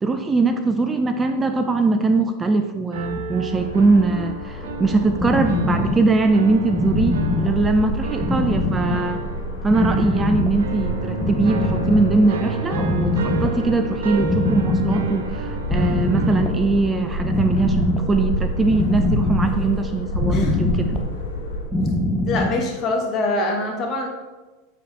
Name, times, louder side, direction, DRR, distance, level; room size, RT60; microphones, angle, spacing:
voice 1, 0.0-9.2 9.6-20.9, right 3 dB, 20° right, 7 dB, 0.4 m, -21 dB
sound 1, 2.9-16.6, right 4 dB, 75° right, 0.7 m, -33 dB
sound 2, 3.5-21.6, equal, 80° left, 1.2 m, -29 dB
sound 3, 4.6-23.1, left 1 dB, 5° left, 0.8 m, -24 dB
voice 2, 22.2-24.1, left 2 dB, 35° left, 1 dB, 1.4 m, -24 dB
8.1 x 4.1 x 3.3 m, 1.2 s
hypercardioid pair, 95°, 0 cm